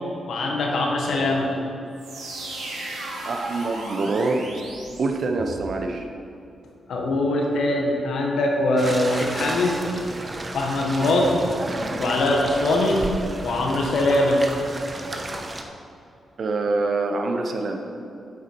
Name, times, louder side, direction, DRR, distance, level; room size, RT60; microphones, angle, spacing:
voice 1, 0.3-1.5 6.9-9.8 10.5-11.4 12.0-13.0 13.4-14.4, left 2 dB, 75° left, 0 dB, 1.4 m, -22 dB
sound 1, 1.9-5.7, right 2 dB, 85° right, 1.6 m, -35 dB
voice 2, 3.3-4.5 5.0-6.1 16.4-17.8, right 3 dB, 60° right, 4 dB, 0.7 m, -25 dB
sound 2, 8.8-15.6, right 2 dB, 30° right, 0.9 m, -33 dB
8.2 x 8.1 x 4.6 m, 2.6 s
cardioid pair, 90°, 0 cm